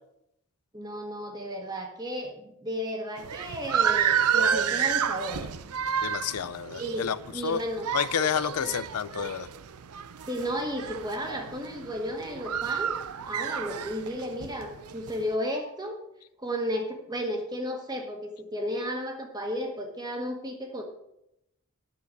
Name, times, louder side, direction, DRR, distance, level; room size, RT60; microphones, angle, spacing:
voice 1, 0.7-5.5 6.8-7.9 8.6-8.8 10.3-12.9 13.2-16.0 16.4-20.8, equal, 20° right, 2 dB, 1.6 m, -33 dB
sound 1, 3.2-15.3, right 8 dB, 85° right, 0.6 m, -30 dB
voice 2, 6.0-7.2 7.4-7.6 7.9-9.5, left 8 dB, 85° left, 16 dB, 0.5 m, -29 dB
9.2 x 7.1 x 6.4 m, 0.82 s
head